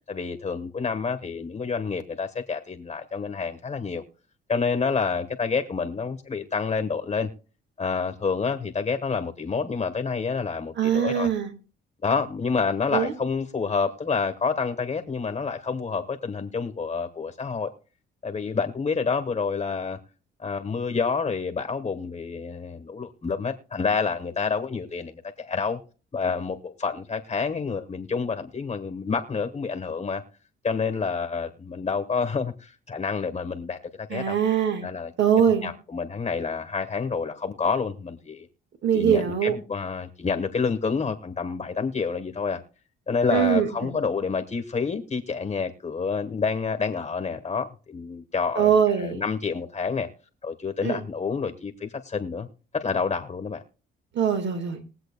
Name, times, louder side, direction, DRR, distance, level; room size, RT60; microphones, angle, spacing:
voice 1, 0.1-4.0 4.5-7.3 7.8-11.3 12.0-17.7 18.2-20.0 20.4-25.8 26.1-30.2 30.6-34.4 34.8-35.1 35.6-38.5 38.9-42.6 43.1-50.1 50.4-52.5 52.7-53.6, left 5 dB, 30° left, 1.2 m, -28 dB
voice 2, 10.8-11.5 12.9-13.1 34.1-34.9 35.2-35.7 38.8-39.6 43.3-43.9 48.5-49.2 50.8-51.0 54.1-54.8, right 8 dB, 65° right, 1.6 m, -22 dB
21.5 x 7.8 x 2.2 m
cardioid pair, 90°, 20 cm